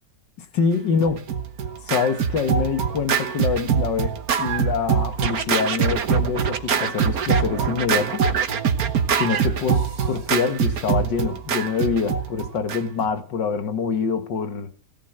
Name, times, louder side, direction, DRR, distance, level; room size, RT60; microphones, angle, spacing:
voice 1, 0.5-1.2 1.8-8.2 9.2-14.7, left 5 dB, 85° left, 2.3 m, -25 dB
Scratching (performance technique), 1.0-13.1, right 7 dB, 60° right, 1.7 m, -23 dB
17.5 x 10.0 x 7.9 m
omnidirectional pair, 1.9 m